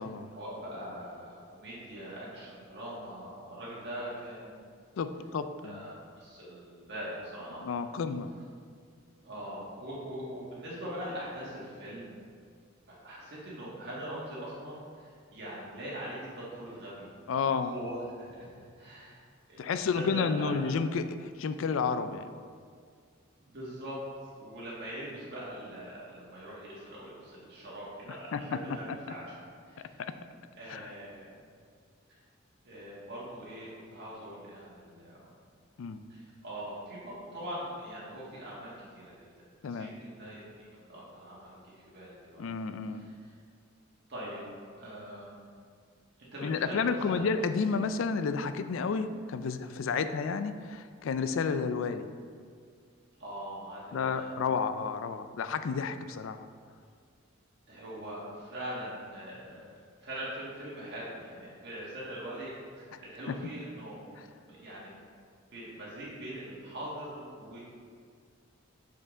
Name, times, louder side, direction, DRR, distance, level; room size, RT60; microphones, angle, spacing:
voice 1, 0.3-4.5 5.6-7.6 9.2-12.2 13.0-19.2 19.5-20.5 23.4-24.0 24.3-29.4 29.7-30.0 30.6-31.3 32.6-35.3 36.1-39.1 39.6-42.5 42.9-43.1 44.1-44.4 44.8-45.5 46.2-47.3 49.9-50.1 53.2-54.3 57.7-59.7 60.0-64.9 65.5-67.6, right 1 dB, 55° right, -7 dB, 1.5 m, -42 dB
voice 2, 5.0-5.8 7.6-8.3 17.3-17.8 19.6-22.3 28.3-28.8 30.0-30.1 30.7-30.9 35.8-36.0 39.6-39.9 42.4-43.0 46.4-52.1 53.9-56.4 63.3-63.4, left 5 dB, 75° left, 11 dB, 0.4 m, -31 dB
6.7 x 5.1 x 3.6 m, 2.1 s
head